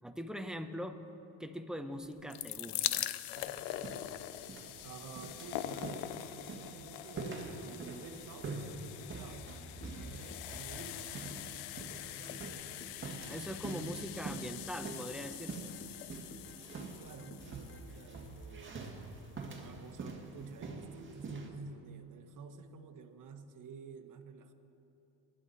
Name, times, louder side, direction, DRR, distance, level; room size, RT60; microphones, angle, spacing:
voice 1, 0.0-1.0 1.4-3.1 13.3-15.7, equal, ahead, 6 dB, 1.0 m, -42 dB
sound 1, 2.1-19.1 19.9-20.0 20.1-20.2, left 14 dB, 85° left, 0.6 m, -43 dB
sound 2, 3.4-21.5, right 3 dB, 30° right, 1.9 m, -46 dB
voice 2, 4.8-12.6 17.0-18.8 19.6-24.5, right 5 dB, 50° right, 5 dB, 1.4 m, -51 dB
sound 3, 9.8-17.8, left 3 dB, 30° left, 1.3 m, -56 dB
23.5 x 10.5 x 4.2 m, 3.0 s
cardioid pair, 90°, 39 cm